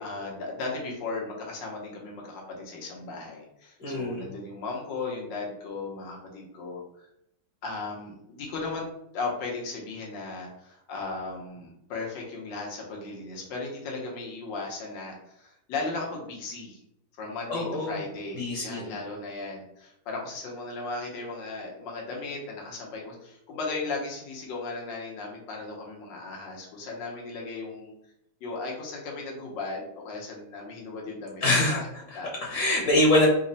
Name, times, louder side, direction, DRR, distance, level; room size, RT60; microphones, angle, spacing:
voice 1, 0.0-6.8 7.6-8.9 9.1-16.8 17.2-27.9 28.4-31.8 32.1-32.3, left 3 dB, 85° left, -2 dB, 1.5 m, -36 dB
voice 2, 3.8-4.3 17.5-18.0 18.3-19.0 31.4-33.3, left 1 dB, 65° left, -2 dB, 1.3 m, -25 dB
4.1 x 2.0 x 3.9 m, 0.78 s
omnidirectional pair, 1.9 m